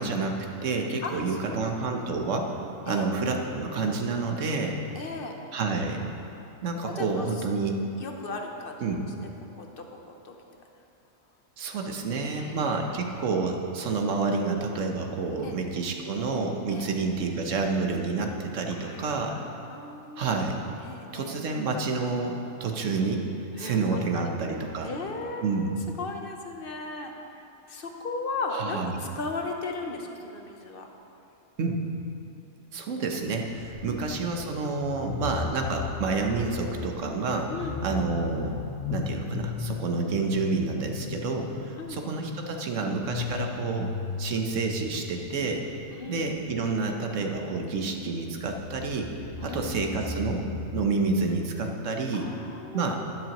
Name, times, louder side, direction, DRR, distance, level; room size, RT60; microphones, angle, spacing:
voice 1, 0.0-2.6 2.9-4.8 5.5-6.1 6.6-7.8 8.8-9.1 11.6-19.4 20.2-20.6 21.1-23.3 23.6-24.9 25.4-25.8 28.5-28.9 31.6-31.9 32.7-37.5 37.8-38.6 38.9-45.7 46.1-49.1 49.4-52.3 52.7-53.0, right 4 dB, 70° right, 3 dB, 1.2 m, -29 dB
voice 2, 1.0-1.8 2.9-3.1 4.9-5.4 6.8-7.3 8.0-9.3 9.6-10.0 10.2-10.4 12.2-12.6 15.4-15.6 16.7-16.9 18.7-20.5 20.8-21.4 23.6-24.2 24.8-27.1 27.7-30.9 33.8-34.1 37.5-38.0 41.8-42.0 45.9-46.2 49.4-50.1 52.1-53.0, left 3 dB, 50° left, 3 dB, 0.9 m, -37 dB
sound 1, 33.5-34.4 34.7-46.9 48.1-48.2 48.4-51.0, left 5 dB, 85° left, 1.6 m, -37 dB
12.0 x 10.5 x 3.0 m, 2.8 s
omnidirectional pair, 1.4 m